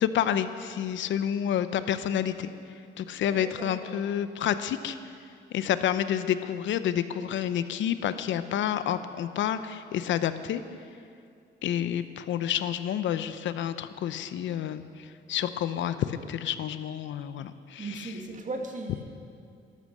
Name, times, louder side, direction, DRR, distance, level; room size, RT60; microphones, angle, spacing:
voice 1, 0.0-2.5 3.0-5.0 5.5-10.6 11.6-18.1, left 10 dB, 70° left, 12 dB, 0.7 m, -29 dB
voice 2, 3.3-4.0 17.7-19.0, right 3 dB, 40° right, 3 dB, 1.9 m, -37 dB
13.0 x 11.5 x 6.6 m, 2.4 s
cardioid pair, 90°, 20 cm